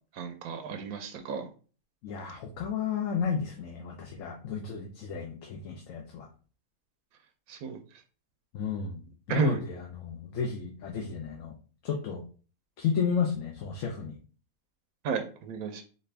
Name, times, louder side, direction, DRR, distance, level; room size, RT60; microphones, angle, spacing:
voice 1, 0.1-1.5 7.5-7.8 9.3-9.6 15.0-15.8, right 6 dB, 85° right, 6 dB, 1.1 m, -32 dB
voice 2, 2.0-6.3 8.5-9.0 9.3-11.5 11.8-12.2 12.8-14.2, left 6 dB, 70° left, 1 dB, 1.0 m, -32 dB
4.2 x 2.6 x 3.2 m, 0.38 s
omnidirectional pair, 1.5 m